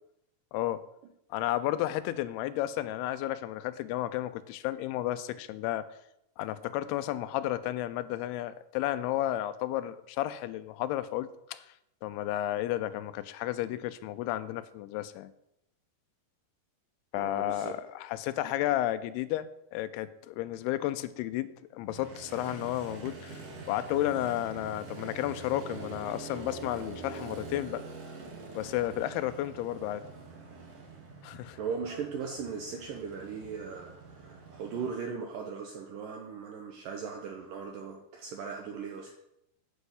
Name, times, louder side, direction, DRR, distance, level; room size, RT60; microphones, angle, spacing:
voice 1, 0.5-0.8 1.3-5.9 6.4-11.7 12.0-15.3 17.1-27.8 28.5-30.0 31.2-31.6, left 14 dB, 85° left, 13 dB, 2.6 m, -32 dB
voice 2, 17.2-17.8 31.6-39.2, right 6 dB, 70° right, 2 dB, 2.3 m, -38 dB
Motorcycle, 21.9-34.9, right 4 dB, 50° right, 2.4 m, -45 dB
10.5 x 5.4 x 8.0 m, 0.82 s
omnidirectional pair, 4.6 m